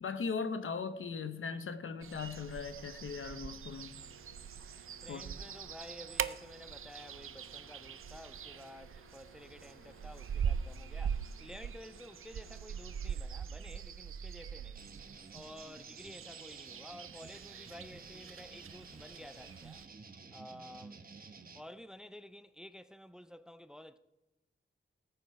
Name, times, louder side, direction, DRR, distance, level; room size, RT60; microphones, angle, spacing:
voice 1, 0.0-4.0 5.1-5.3, left 5 dB, 80° left, 0.9 m, -38 dB
sound 1, 2.0-19.9, right 7 dB, 85° right, 0.5 m, -42 dB
sound 2, 3.9-13.2, right 1 dB, 45° left, 4.9 m, -61 dB
voice 2, 5.0-14.9 15.3-19.8 20.3-21.1 21.5-24.0, left 1 dB, 5° right, 0.5 m, -52 dB
sound 3, 14.8-21.6, right 4 dB, 45° right, 1.0 m, -52 dB
18.5 x 7.9 x 4.8 m
wide cardioid pair, 130°, 21 cm